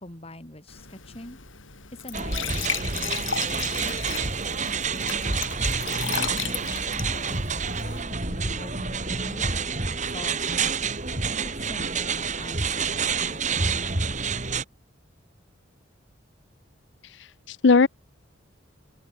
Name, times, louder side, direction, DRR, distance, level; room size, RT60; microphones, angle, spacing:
voice 1, 0.0-1.4 2.0-5.1 5.8-7.4 7.8-9.5 10.1-10.7 11.0-13.6, left 1 dB, 30° left, 4.0 m, -44 dB
Glass / Trickle dribble / Fill (with liquid), 0.7-8.0, left 8 dB, 90° left, 7.2 m, -35 dB
sound 1, 2.1-14.6, right 5 dB, 40° right, 2.9 m, -28 dB
voice 2, 17.0-17.9, left 4 dB, 65° left, 0.6 m, -20 dB
open air
head